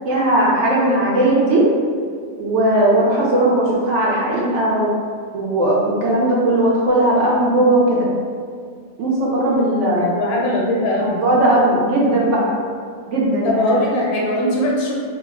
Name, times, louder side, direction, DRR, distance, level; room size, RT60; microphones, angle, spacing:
voice 1, 0.0-1.6 2.4-4.9 5.3-8.1 9.0-10.1 11.0-12.5 13.1-13.8, right 1 dB, 65° right, -4 dB, 0.8 m, -17 dB
voice 2, 9.9-11.2 13.4-14.9, left 1 dB, 90° left, -3 dB, 1.2 m, -20 dB
2.7 x 2.1 x 3.5 m, 2.1 s
omnidirectional pair, 1.5 m